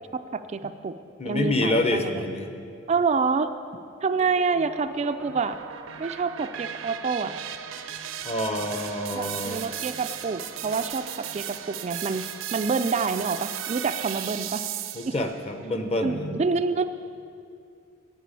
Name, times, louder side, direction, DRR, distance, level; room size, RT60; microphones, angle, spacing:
voice 1, 0.1-0.9 1.3-2.2 2.9-3.5 4.0-5.6 6.0-7.3 9.1-11.0 11.3-12.2 12.5-14.6 16.0-16.8, right 4 dB, 35° right, 8 dB, 0.3 m, -27 dB
voice 2, 1.2-2.5 8.2-9.7 14.9-16.4, left 1 dB, 30° left, 6 dB, 0.8 m, -27 dB
sound 1, 4.2-15.3, right 10 dB, 75° right, 0.6 m, -36 dB
9.3 x 9.1 x 8.3 m, 2.4 s
head